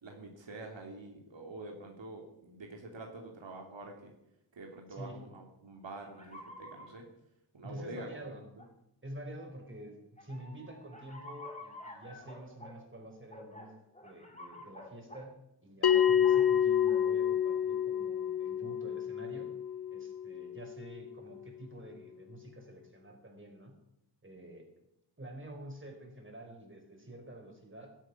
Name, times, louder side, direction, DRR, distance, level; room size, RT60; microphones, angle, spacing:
voice 1, 0.0-4.1 4.5-7.0 7.5-8.3, right 2 dB, 85° right, 2 dB, 2.9 m, -46 dB
voice 2, 4.9-5.2 7.6-8.5 9.0-13.7 14.0-19.5 19.9-23.8 24.2-24.7 25.2-28.0, right 1 dB, 25° right, 2 dB, 4.9 m, -48 dB
sound 1, 5.2-5.3 6.0-6.9 7.8-7.9 8.6-8.7 10.2-12.8 13.3-15.3 15.9-16.5 16.8-17.1, left 1 dB, 15° left, 3.1 m, -49 dB
Bell, 15.8-20.9, left 9 dB, 60° left, 1.1 m, -28 dB
17.0 x 12.5 x 6.0 m, 0.83 s
wide cardioid pair, 95°, 43 cm